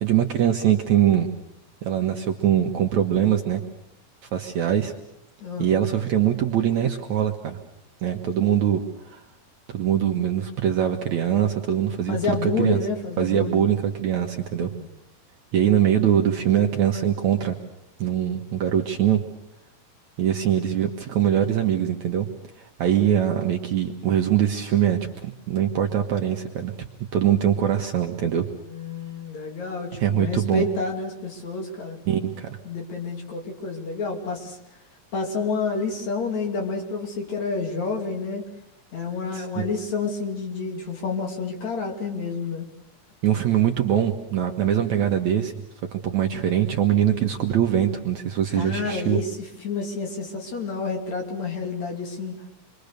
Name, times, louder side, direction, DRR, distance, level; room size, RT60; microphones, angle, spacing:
voice 1, 0.0-1.3 1.8-3.6 4.3-4.9 5.6-7.6 8.0-9.2 9.7-12.8 13.2-14.7 15.5-17.6 18.0-19.2 20.2-22.3 22.6-26.7 27.1-28.5 30.0-30.7 32.1-32.6 39.3-39.7 43.2-45.6 45.9-49.2, right 10 dB, 65° right, 3 dB, 2.1 m, -22 dB
voice 2, 12.1-13.6 14.6-14.9 28.7-32.0 32.7-34.6 35.1-38.5 38.9-42.7 48.5-49.3 49.6-52.4, left 4 dB, 50° left, 3 dB, 3.6 m, -29 dB
27.5 x 23.0 x 6.7 m, 0.84 s
omnidirectional pair, 4.4 m